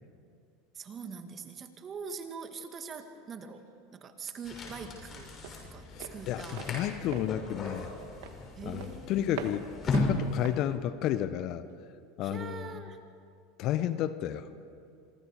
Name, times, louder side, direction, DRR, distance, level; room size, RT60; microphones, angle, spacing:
voice 1, 0.7-5.3 5.6-6.7 8.6-9.2 12.2-13.0, right 5 dB, 35° right, 7 dB, 2.2 m, -43 dB
Walk footsteps, 3.2-11.8, right 8 dB, 70° right, 1.6 m, -46 dB
sound 1, 4.4-10.7, left 2 dB, 35° left, 6.6 m, -36 dB
voice 2, 5.9-7.9 8.6-11.6 12.2-12.8 13.6-14.5, left 11 dB, 55° left, 13 dB, 1.0 m, -32 dB
26.5 x 24.5 x 4.9 m, 2.4 s
hypercardioid pair, 80°, 0 cm